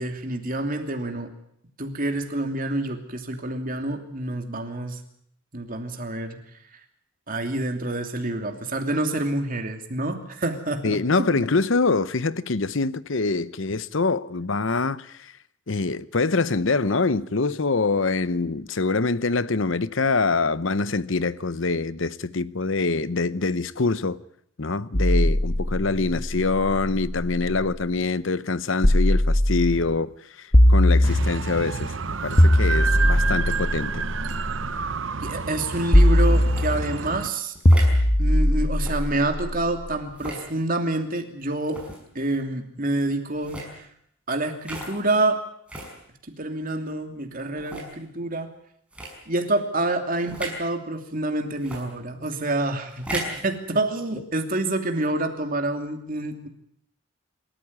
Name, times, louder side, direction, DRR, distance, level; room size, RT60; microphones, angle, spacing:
voice 1, 0.0-1.3 1.8-5.0 5.5-6.4 6.7-6.8 7.3-11.0 11.3-11.4 35.2-37.5 38.2-41.8 42.1-43.9 44.3-45.4 46.4-48.5 49.3-56.5, right 2 dB, 40° right, 2.9 m, -27 dB
voice 2, 10.8-15.3 15.7-24.2 24.6-30.1 30.4-34.0, left 3 dB, 60° left, 0.8 m, -25 dB
sound 1, 24.9-27.7 28.8-29.9 30.5-31.6 32.4-34.6 35.9-37.0 37.6-39.8, left 1 dB, 30° left, 1.2 m, -20 dB
sound 2, 31.0-37.3, right 5 dB, 60° right, 0.8 m, -29 dB
sound 3, 36.5-36.7 37.6-38.0 38.7-39.0 40.1-40.5 41.6-42.0 43.3-43.7 44.6-44.9 45.7-45.9 46.6-46.7 47.6-47.9 48.9-49.1 50.3-50.6 51.6-51.8 52.9-53.4, right 1 dB, 5° right, 5.7 m, -35 dB
27.5 x 14.0 x 9.6 m
head